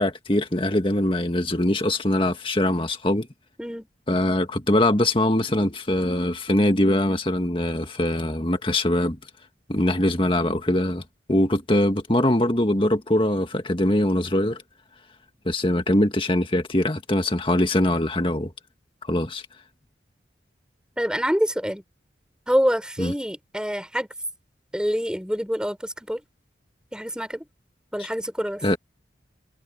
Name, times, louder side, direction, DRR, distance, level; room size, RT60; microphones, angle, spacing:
voice 1, 0.0-3.3 4.1-9.2 9.7-11.0 11.3-14.6 15.5-18.5 19.1-19.4 23.0-23.1 28.0-28.1 28.6-28.8, left 1 dB, 30° left, 1.9 m, -22 dB
voice 2, 21.0-21.8 22.5-24.1 24.7-26.2 26.9-27.4 27.9-28.6, equal, 5° right, 5.0 m, -26 dB
head